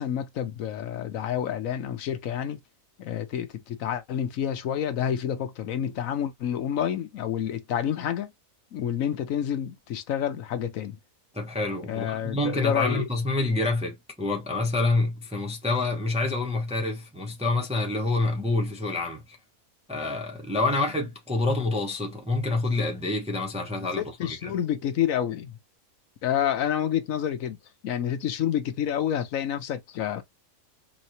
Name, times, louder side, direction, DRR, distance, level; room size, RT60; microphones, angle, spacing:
voice 1, 0.0-2.6 3.0-8.3 8.7-11.0 11.9-13.1 24.0-25.5 26.2-27.6 27.8-30.2, left 9 dB, 75° left, 1.1 m, -28 dB
voice 2, 11.3-19.4 19.9-24.5, left 2 dB, 5° right, 0.6 m, -27 dB
4.1 x 3.1 x 2.6 m
omnidirectional pair, 1.4 m